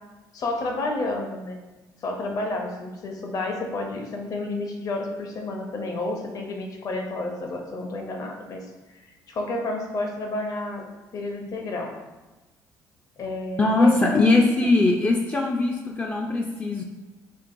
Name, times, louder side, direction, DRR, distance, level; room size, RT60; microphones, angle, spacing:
voice 1, 0.3-1.6 2.0-10.9 11.1-11.9 13.2-14.3 14.6-14.7, left 2 dB, 55° left, 2 dB, 0.7 m, -30 dB
voice 2, 13.6-16.8, left 2 dB, 20° left, 0 dB, 0.3 m, -21 dB
4.4 x 3.1 x 2.6 m, 1.1 s
cardioid pair, 95°, 7 cm